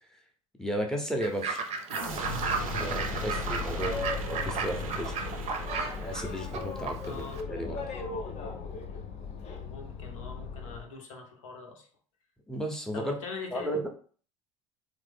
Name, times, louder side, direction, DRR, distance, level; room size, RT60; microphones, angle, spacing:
voice 1, 0.6-1.7 2.8-3.9 4.4-5.4 6.0-7.8 12.5-13.1 13.5-13.9, equal, 5° left, 2 dB, 0.7 m, -34 dB
Fowl / Bird, 1.2-7.4, right 5 dB, 40° right, 0.6 m, -35 dB
sound 1, 1.9-6.6, right 2 dB, 85° right, 0.5 m, -38 dB
Boat Water vehicle, 2.0-10.9, left 5 dB, 40° left, 0.6 m, -37 dB
voice 2, 3.7-4.1 7.0-7.4 9.6-11.9 12.9-13.8, left 4 dB, 70° left, 2 dB, 0.8 m, -42 dB
3.2 x 2.1 x 3.4 m, 0.44 s
figure-of-eight pair, 65°, 17 cm